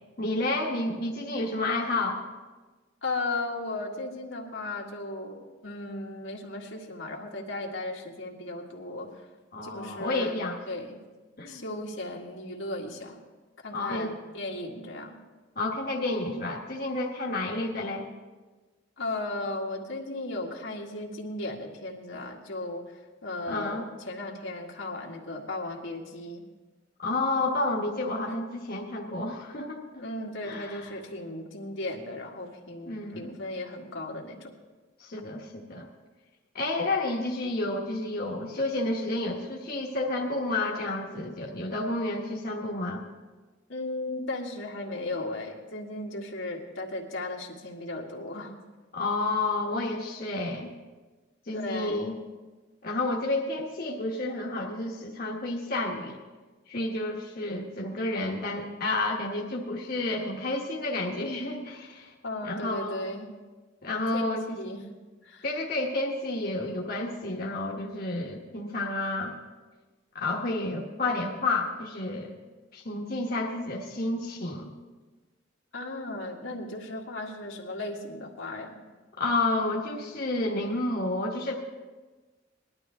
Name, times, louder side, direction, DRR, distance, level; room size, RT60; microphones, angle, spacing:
voice 1, 0.2-2.2 9.5-10.6 11.4-11.6 13.7-14.1 15.6-18.0 23.5-23.8 27.0-30.0 30.4-30.9 32.9-33.3 35.0-35.9 36.5-43.0 48.9-50.7 51.5-52.2 52.8-56.2 56.7-62.1 62.4-63.1 63.8-64.4 65.4-69.3 70.1-72.3 72.7-74.7 79.2-81.5, left 2 dB, 50° left, -2 dB, 1.2 m, -30 dB
voice 2, 3.0-9.1 9.6-10.4 10.7-11.0 11.5-13.2 13.6-15.2 19.0-26.4 30.0-34.5 43.7-48.5 51.5-52.1 62.2-63.3 63.9-64.2 64.6-64.8 65.2-65.5 75.7-78.8, left 2 dB, 85° left, -1 dB, 1.9 m, -36 dB
19.5 x 12.0 x 3.6 m, 1.3 s
head